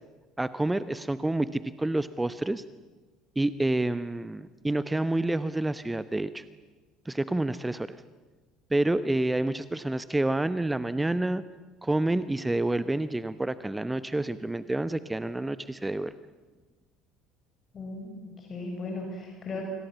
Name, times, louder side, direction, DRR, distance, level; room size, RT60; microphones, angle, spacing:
voice 1, 0.4-2.6 3.4-6.4 7.0-8.0 8.7-11.4 11.8-16.1, right 2 dB, 10° right, 14 dB, 0.9 m, -28 dB
voice 2, 17.7-19.6, left 3 dB, 35° left, 2 dB, 5.6 m, -37 dB
29.5 x 26.5 x 7.2 m, 1.3 s
figure-of-eight pair, 60°, 0 cm